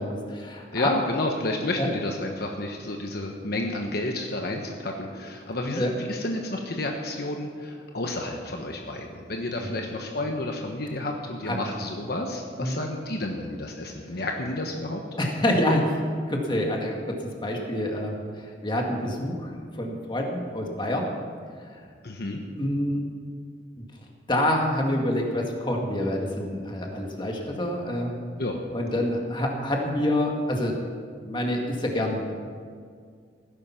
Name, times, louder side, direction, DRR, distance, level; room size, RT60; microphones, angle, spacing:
voice 1, 0.0-0.9 1.8-1.9 5.8-5.9 9.6-9.7 11.5-11.7 12.6-12.8 15.2-15.9 16.3-21.1 22.6-23.0 23.8-23.9 24.3-28.1 28.7-30.8 31.2-32.3, left 1 dB, 25° left, 0 dB, 2.0 m, -27 dB
voice 2, 0.7-15.0 22.0-22.4 28.4-28.6, left 2 dB, 60° left, 2 dB, 1.2 m, -31 dB
17.0 x 10.5 x 5.8 m, 2.1 s
head